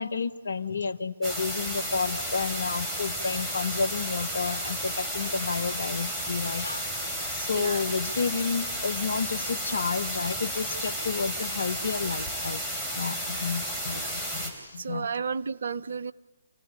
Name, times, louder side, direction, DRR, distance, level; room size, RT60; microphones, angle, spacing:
voice 1, 0.0-6.9 7.3-12.6 12.9-15.1, left 5 dB, 70° left, 14 dB, 1.2 m, -31 dB
sound 1, 1.2-14.5, equal, 10° right, 4.9 m, -32 dB
voice 2, 7.5-7.8 13.9-14.1 14.8-16.1, right 6 dB, 60° right, 16 dB, 0.7 m, -32 dB
28.0 x 17.5 x 9.9 m, 1.2 s
figure-of-eight pair, 135°, 0 cm